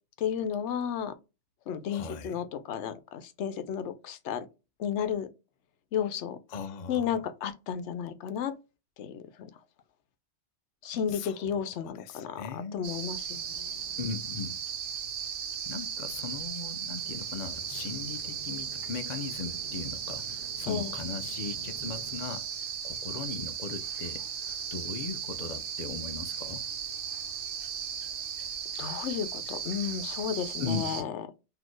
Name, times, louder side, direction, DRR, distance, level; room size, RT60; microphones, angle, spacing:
voice 1, 0.2-1.1 1.7-4.5 4.8-5.3 5.9-6.4 6.9-8.5 9.0-9.5 10.8-13.8 20.6-20.9 28.7-31.1, left 8 dB, 80° left, 0.9 m, -33 dB
voice 2, 1.9-2.3 6.5-7.2 11.1-11.6 12.0-12.9 14.0-14.6 15.7-26.6 30.6-31.0, left 5 dB, 50° left, 0.5 m, -38 dB
sound 1, 12.8-31.0, right 8 dB, 75° right, 1.1 m, -36 dB
sound 2, 16.0-16.4 16.9-22.3, left 2 dB, 35° right, 1.6 m, -51 dB
4.1 x 2.8 x 3.1 m
omnidirectional pair, 1.2 m